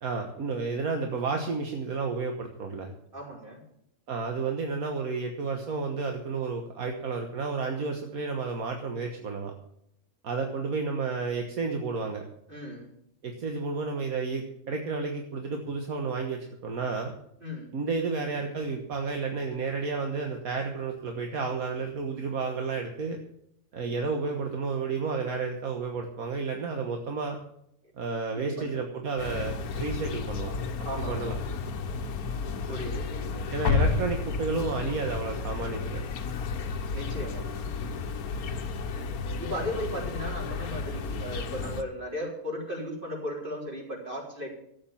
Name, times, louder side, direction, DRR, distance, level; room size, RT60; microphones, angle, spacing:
voice 1, 0.0-2.9 4.1-9.5 10.2-12.2 13.2-17.1 17.7-23.2 23.7-27.4 28.0-30.6 31.1-31.4 33.5-36.0, right 4 dB, 75° right, 3 dB, 1.8 m, -31 dB
voice 2, 3.1-3.6 12.5-12.9 17.4-17.7 28.4-28.9 30.8-31.3 32.7-33.5 36.9-37.5 39.4-44.5, equal, 35° right, -2 dB, 4.3 m, -36 dB
sound 1, 29.2-41.8, left 4 dB, 90° left, 1.4 m, -32 dB
13.0 x 8.7 x 7.2 m, 0.73 s
omnidirectional pair, 1.5 m